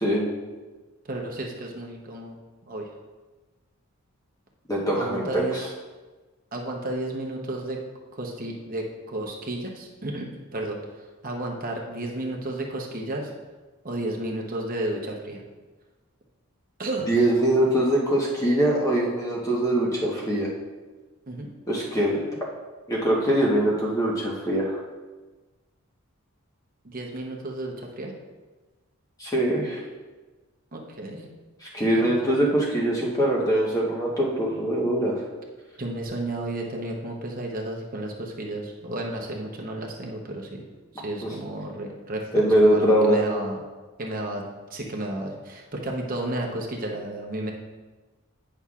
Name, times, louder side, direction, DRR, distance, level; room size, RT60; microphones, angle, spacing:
voice 1, 0.0-0.3 4.7-5.6 17.1-20.5 21.7-22.2 22.9-24.8 29.2-29.8 31.6-35.1 42.3-43.2, right 1 dB, 15° left, -3 dB, 1.1 m, -22 dB
voice 2, 1.0-2.4 2.7-2.9 4.9-5.7 6.5-7.8 8.1-10.8 11.2-13.3 13.8-15.4 16.8-17.1 21.3-21.5 26.8-28.1 30.7-31.3 31.8-32.3 35.8-40.6 41.0-43.6 44.0-44.4 44.7-47.5, right 1 dB, 40° right, 0 dB, 0.9 m, -32 dB
9.9 x 5.6 x 2.4 m, 1.3 s
head